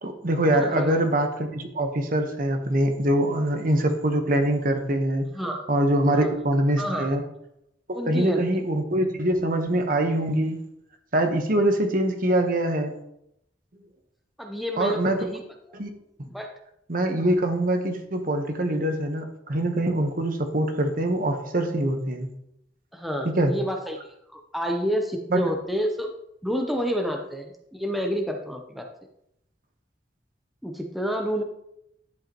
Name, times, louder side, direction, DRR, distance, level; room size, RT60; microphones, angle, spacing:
voice 1, 0.0-5.3 5.7-7.2 7.9-10.6 11.1-12.9 14.8-15.2 15.7-15.9 16.9-22.3 23.4-23.5 25.3-25.4, right 1 dB, 50° right, 5 dB, 1.1 m, -24 dB
voice 2, 0.5-0.9 5.3-5.7 6.1-6.3 6.8-7.1 7.9-8.4 14.4-15.4 16.3-16.5 22.9-24.0 24.3-26.1 26.4-28.9 30.6-31.4, equal, ahead, 2 dB, 0.7 m, -29 dB
10.5 x 7.7 x 3.0 m, 0.79 s
head